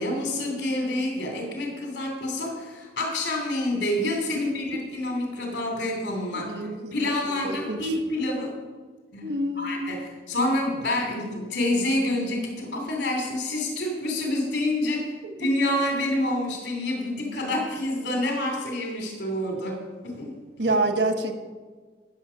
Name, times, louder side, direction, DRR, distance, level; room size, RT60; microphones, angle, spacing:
voice 1, 0.0-6.6 6.9-8.5 9.1-15.1 15.4-20.4 20.7-20.8, left 1 dB, 80° left, 1 dB, 2.7 m, -28 dB
voice 2, 6.3-6.9 7.4-7.9 9.2-9.8 20.6-21.3, right 2 dB, 75° right, 6 dB, 1.3 m, -27 dB
16.5 x 6.9 x 5.7 m, 1.4 s
head